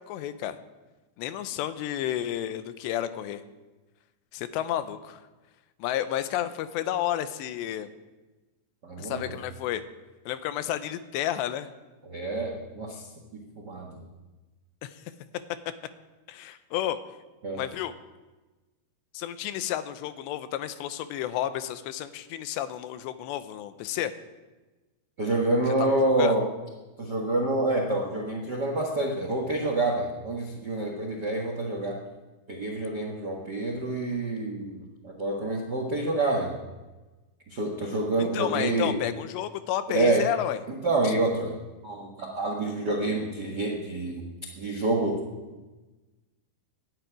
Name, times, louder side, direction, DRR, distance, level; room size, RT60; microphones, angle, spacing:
voice 1, 0.1-0.6 1.2-3.4 4.3-5.2 5.8-7.9 9.0-9.8 10.3-11.7 14.8-15.0 16.3-17.0 17.5-17.9 19.1-24.1 25.7-26.4 38.2-40.6 41.0-41.1, left 12 dB, 90° left, 11 dB, 3.1 m, -31 dB
voice 2, 8.8-9.4 12.1-13.1 13.3-14.0 17.4-17.6 25.2-26.5 27.0-32.0 32.5-36.5 37.5-38.9 39.9-40.3 40.7-41.5 41.8-44.2 44.6-45.2, right 2 dB, 90° right, 1 dB, 0.9 m, -27 dB
12.0 x 10.5 x 9.1 m, 1.2 s
omnidirectional pair, 4.9 m